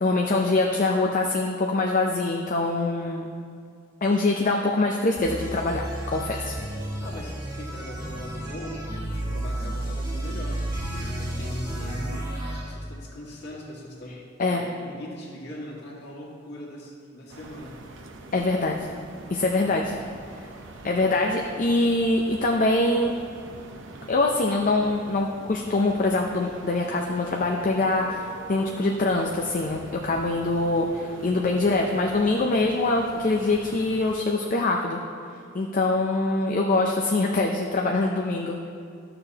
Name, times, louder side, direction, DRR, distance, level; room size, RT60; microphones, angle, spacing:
voice 1, 0.0-3.3 4.0-6.6 14.4-14.7 18.3-18.9 19.3-20.0 20.8-23.1 24.1-35.0 35.5-38.6, left 2 dB, 45° left, 0 dB, 0.5 m, -24 dB
sound 1, 5.2-12.7, right 1 dB, 20° right, 1.3 m, -32 dB
voice 2, 7.0-14.2 14.5-17.8, left 1 dB, 60° left, -4 dB, 1.8 m, -40 dB
sound 2, 17.3-34.2, right 2 dB, 70° right, 0.7 m, -44 dB
13.0 x 6.8 x 2.9 m, 2.3 s
head